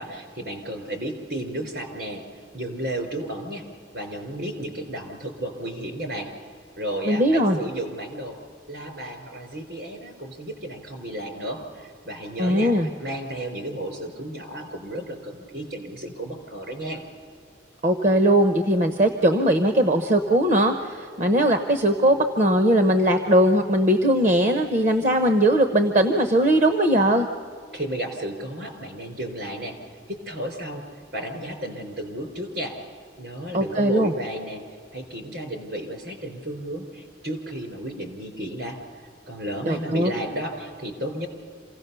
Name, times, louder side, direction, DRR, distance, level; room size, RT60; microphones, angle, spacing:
voice 1, 0.0-2.2 2.5-3.6 3.9-6.3 6.8-8.4 8.7-17.0 27.7-29.8 30.1-30.8 31.1-32.8 33.2-34.6 34.9-41.3, right 1 dB, 65° right, 4 dB, 4.3 m, -33 dB
voice 2, 7.1-7.6 12.4-12.9 17.8-27.3 33.5-34.1 39.6-40.1, right 1 dB, 40° right, 7 dB, 0.9 m, -20 dB
27.0 x 17.0 x 6.9 m, 2.2 s
head